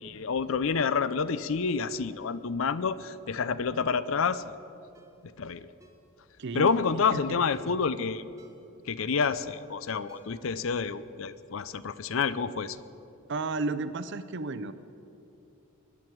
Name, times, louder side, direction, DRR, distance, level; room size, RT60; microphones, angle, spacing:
voice 1, 0.0-4.4 5.4-5.7 6.5-8.2 8.9-12.8, left 5 dB, 65° left, 15 dB, 0.5 m, -28 dB
Ringtone, 4.1-4.3 4.9-5.2 5.8-6.1 6.7-6.9 7.5-7.8 8.4-8.7 9.2-9.6 10.1-10.5 10.8-10.9, right 2 dB, 15° right, 1.0 m, -55 dB
voice 2, 13.3-14.7, right 3 dB, 55° right, 12 dB, 0.6 m, -32 dB
21.0 x 10.5 x 4.6 m, 2.8 s
head